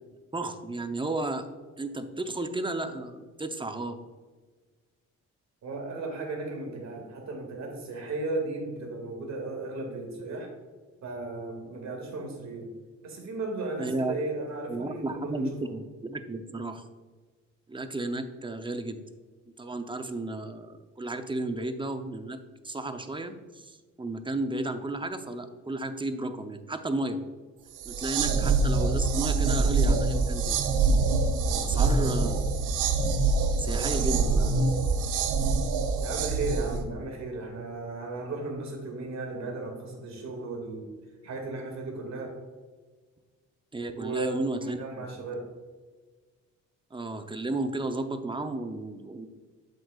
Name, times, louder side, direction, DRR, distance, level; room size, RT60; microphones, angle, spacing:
voice 1, 0.3-1.5 1.8-4.0 13.8-14.1 14.7-16.8 17.7-19.0 19.6-22.4 22.6-27.2 27.8-30.6 31.6-32.4 33.6-34.2 43.7-45.1 46.9-49.3, right 2 dB, 15° right, 8 dB, 0.7 m, -33 dB
voice 2, 5.6-10.5 11.0-12.7 13.0-15.7 28.2-28.4 31.4-32.3 33.6-34.5 36.0-40.9 41.2-42.3 44.0-45.4, right 2 dB, 60° right, 2 dB, 2.3 m, -35 dB
sound 1, 27.8-36.8, right 3 dB, 90° right, 0.8 m, -25 dB
7.8 x 7.6 x 2.4 m, 1.4 s
cardioid pair, 90°, 30 cm